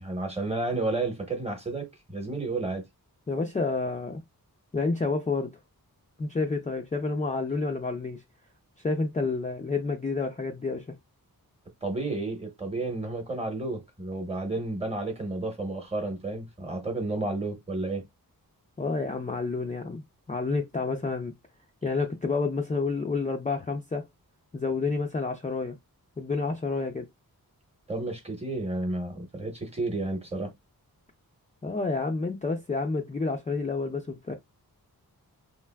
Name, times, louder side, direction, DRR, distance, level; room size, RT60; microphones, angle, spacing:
voice 1, 0.0-2.8 11.8-18.0 27.9-30.5, right 2 dB, 15° right, 0.9 m, -31 dB
voice 2, 3.3-4.2 4.7-5.5 6.2-8.2 8.8-11.0 18.8-20.0 20.3-21.3 21.8-24.1 24.5-25.8 26.2-27.1 31.6-34.3, left 3 dB, 20° left, 0.4 m, -29 dB
3.3 x 2.4 x 2.3 m
wide cardioid pair, 125°, 37 cm